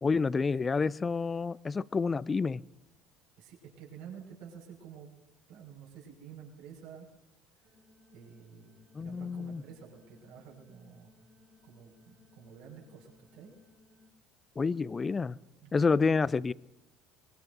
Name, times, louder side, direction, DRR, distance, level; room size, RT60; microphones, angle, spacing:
voice 1, 0.0-2.6 8.9-9.6 14.6-15.4 15.7-16.5, left 4 dB, 30° left, 20 dB, 0.5 m, -28 dB
voice 2, 3.4-5.1 5.5-7.1 8.1-11.1 11.6-13.5 15.6-16.0, right 7 dB, 75° right, -1 dB, 5.5 m, -50 dB
sound 1, 7.6-14.1, left 3 dB, 50° right, 4.5 m, -63 dB
23.0 x 21.5 x 2.7 m, 0.95 s
hypercardioid pair, 70°, 0 cm